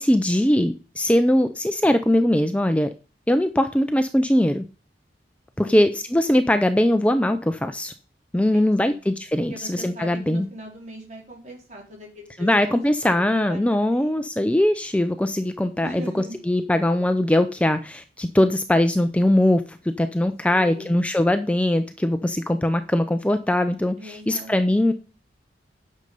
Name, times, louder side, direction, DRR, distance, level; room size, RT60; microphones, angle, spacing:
voice 1, 0.0-2.9 3.3-4.6 5.6-7.9 8.3-10.5 12.4-16.0 16.5-24.9, left 1 dB, 5° left, 9 dB, 0.5 m, -21 dB
voice 2, 1.1-1.5 5.6-5.9 8.3-9.0 9.4-14.2 15.8-16.4 20.4-21.0 24.0-24.8, left 1 dB, 40° right, -1 dB, 4.2 m, -41 dB
9.6 x 6.6 x 5.4 m, 0.36 s
head